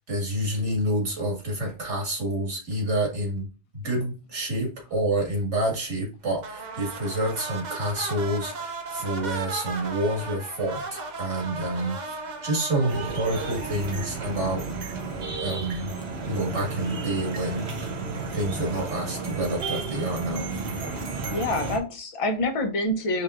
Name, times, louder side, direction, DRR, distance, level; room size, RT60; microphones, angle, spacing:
voice 1, 0.1-3.5 3.7-14.6 15.4-15.9 16.3-17.9 18.3-20.5, right 1 dB, 90° right, -1 dB, 2.2 m, -28 dB
sound 1, 6.4-14.9, right 3 dB, 45° right, 0.7 m, -36 dB
sound 2, 12.9-21.8, right 4 dB, 65° right, 1.2 m, -32 dB
voice 2, 21.3-23.2, left 1 dB, 35° left, 4 dB, 0.7 m, -26 dB
5.5 x 3.2 x 2.5 m, 0.33 s
omnidirectional pair, 1.2 m